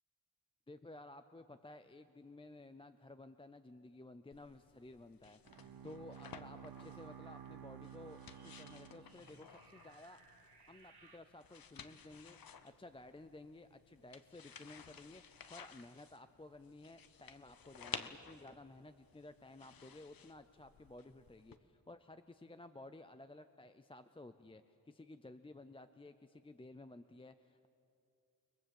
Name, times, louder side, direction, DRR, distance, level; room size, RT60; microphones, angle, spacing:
voice 1, 0.7-10.2 10.7-27.7, left 2 dB, 15° left, 10 dB, 0.5 m, -55 dB
sound 1, 4.3-21.6, left 7 dB, 65° left, 1.1 m, -55 dB
Bowed string instrument, 5.5-9.9, right 9 dB, 65° right, 0.9 m, -54 dB
sound 2, 5.9-11.2, right 3 dB, 85° right, 3.5 m, -64 dB
29.5 x 21.5 x 7.7 m, 2.6 s
wide cardioid pair, 165°, 38 cm